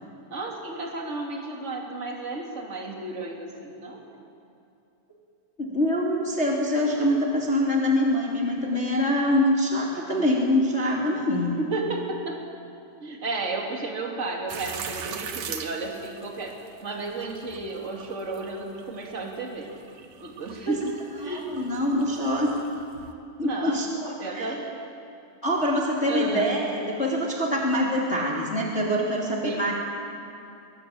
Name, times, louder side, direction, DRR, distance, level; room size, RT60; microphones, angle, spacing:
voice 1, 0.3-4.0 11.6-12.4 13.0-19.7 20.2-21.7 23.4-23.8 24.2-24.8 26.1-26.6 29.4-29.6, right 3 dB, 20° right, 0 dB, 2.2 m, -33 dB
voice 2, 5.6-11.5 20.7-20.8 21.2-22.5 23.4-24.5 25.4-29.7, left 1 dB, 20° left, -2 dB, 2.4 m, -24 dB
sound 1, 14.5-23.1, right 7 dB, 70° right, 1.6 m, -41 dB
22.5 x 22.0 x 8.7 m, 2.7 s
omnidirectional pair, 5.4 m